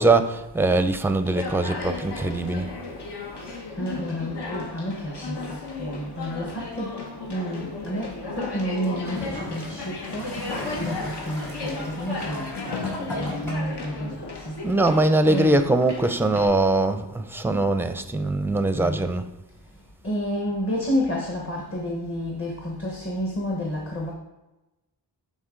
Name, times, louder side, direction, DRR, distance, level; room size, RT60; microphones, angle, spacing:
voice 1, 0.0-2.7 14.6-19.2, right 2 dB, 5° right, 8 dB, 0.5 m, -22 dB
Conversation, 1.2-16.5, left 3 dB, 70° left, 1.2 m, -35 dB
voice 2, 3.4-7.0 7.3-10.3 10.6-15.7 18.8-19.0 20.0-24.1, equal, 30° left, -2 dB, 1.2 m, -30 dB
Gurgling / Toilet flush, 9.0-13.8 14.7-14.8, left 2 dB, 55° left, 2.7 m, -35 dB
11.0 x 3.7 x 3.8 m, 1.0 s
wide cardioid pair, 100°, 42 cm